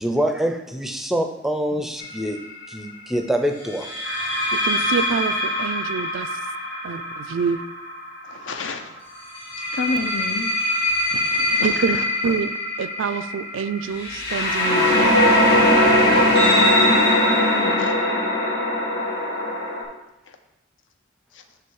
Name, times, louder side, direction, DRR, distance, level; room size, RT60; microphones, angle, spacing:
voice 1, 0.0-2.4 2.7-3.9, equal, ahead, 4 dB, 0.4 m, -25 dB
sound 1, 2.0-2.3 3.8-8.6 9.4-19.8, left 1 dB, 55° left, 2.4 m, -21 dB
voice 2, 4.5-6.4 6.8-7.6 11.6-12.0 12.2-15.2, right 5 dB, 80° right, 12 dB, 0.4 m, -27 dB
voice 3, 8.2-9.0 9.6-10.5 11.1-12.0 17.4-18.0 20.3-20.4 21.3-21.4, left 4 dB, 75° left, 7 dB, 0.6 m, -31 dB
9.3 x 3.1 x 4.7 m, 0.92 s
head